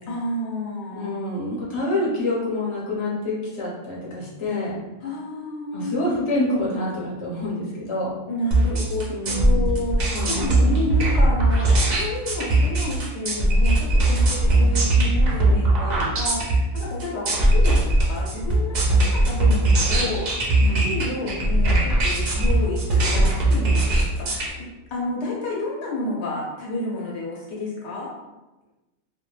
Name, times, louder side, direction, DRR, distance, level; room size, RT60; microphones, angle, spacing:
voice 1, 0.1-1.1 5.0-6.0 8.3-24.5 24.9-28.1, left 2 dB, 70° left, -4 dB, 0.8 m, -30 dB
voice 2, 0.9-4.7 5.7-8.1 9.1-10.9 20.6-20.9, left 1 dB, 30° left, -6 dB, 0.6 m, -27 dB
sound 1, 8.5-24.5, right 1 dB, 55° right, 0.5 m, -19 dB
2.2 x 2.1 x 3.0 m, 1.0 s
omnidirectional pair, 1.2 m